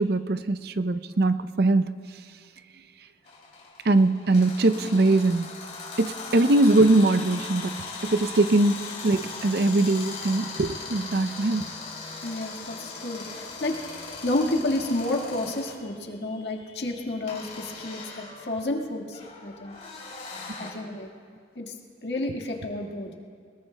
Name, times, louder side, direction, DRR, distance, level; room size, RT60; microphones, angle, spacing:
voice 1, 0.0-1.9 3.9-5.5 6.0-11.6, right 2 dB, 60° right, 11 dB, 0.5 m, -22 dB
sound 1, 3.3-15.8 17.3-20.7, left 4 dB, 40° left, 2.7 m, -39 dB
voice 2, 12.2-13.8 14.2-19.8 20.6-21.1 21.5-21.7 22.0-23.1, left 2 dB, 75° left, 1 dB, 1.7 m, -30 dB
22.5 x 21.0 x 2.2 m, 2.1 s
head